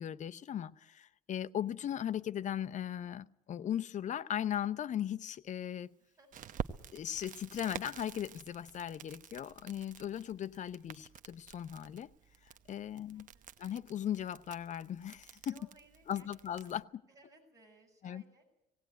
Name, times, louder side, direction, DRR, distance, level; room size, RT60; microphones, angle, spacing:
voice 1, 0.0-5.9 6.9-12.1 12.7-13.3 13.6-15.5 16.1-16.8 18.0-18.2, left 10 dB, 45° left, 0.7 m, -38 dB
Crackle, 6.3-16.8, right 9 dB, 50° right, 1.0 m, -49 dB
voice 2, 13.1-13.4 15.5-16.3 16.6-16.8 17.1-18.4, right 2 dB, 20° right, 7.7 m, -62 dB
18.0 x 17.5 x 9.2 m
cardioid pair, 110°, 17 cm